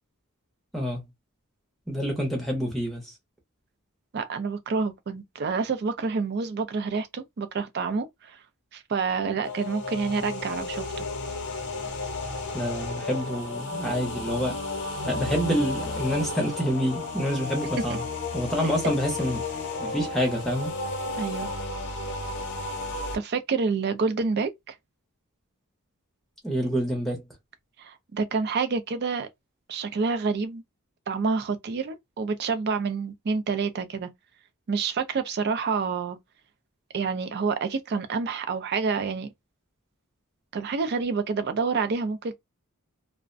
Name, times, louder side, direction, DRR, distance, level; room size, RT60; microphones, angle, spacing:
voice 1, 1.9-3.2 12.5-14.6 15.0-18.0 18.3-19.4 19.8-20.7 26.4-27.2, equal, ahead, 0.6 m, -27 dB
voice 2, 4.1-8.4 8.7-11.1 21.2-21.5 23.1-24.8 27.8-29.3 29.7-30.6 31.1-34.1 34.7-36.2 36.9-39.3 40.5-42.3, right 4 dB, 50° right, 0.4 m, -28 dB
sound 1, 9.4-23.2, left 3 dB, 55° left, 0.7 m, -33 dB
2.4 x 2.1 x 2.5 m
head